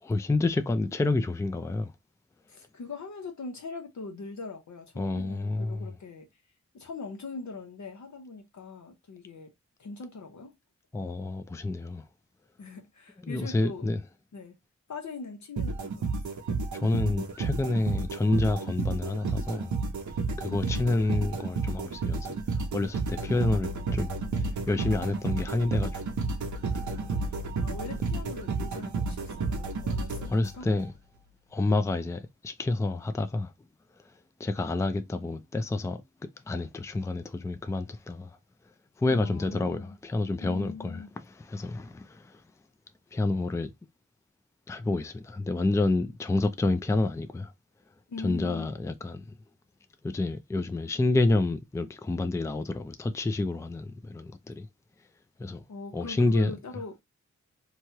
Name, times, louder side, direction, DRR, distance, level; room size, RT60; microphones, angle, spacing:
voice 1, 0.0-1.9 5.0-5.9 10.9-12.0 13.2-14.0 16.7-19.7 20.4-26.3 30.3-30.9 31.5-33.5 34.4-36.0 36.5-38.4 39.0-42.4 43.1-43.7 44.7-47.5 48.2-49.2 50.0-54.7 55.4-55.6 55.9-56.5, left 2 dB, 10° left, 0.4 m, -29 dB
voice 2, 2.5-6.3 6.7-9.5 9.8-10.6 12.6-13.9 14.3-14.6 14.9-16.1 16.4-16.6 20.4-21.0 27.5-30.7 39.1-39.9 40.4-41.1 48.1-48.7 55.7-57.0, left 4 dB, 75° left, 0.9 m, -41 dB
sound 1, 15.6-30.8, right 3 dB, 80° right, 0.7 m, -31 dB
3.0 x 2.3 x 2.8 m
wide cardioid pair, 75°, 29 cm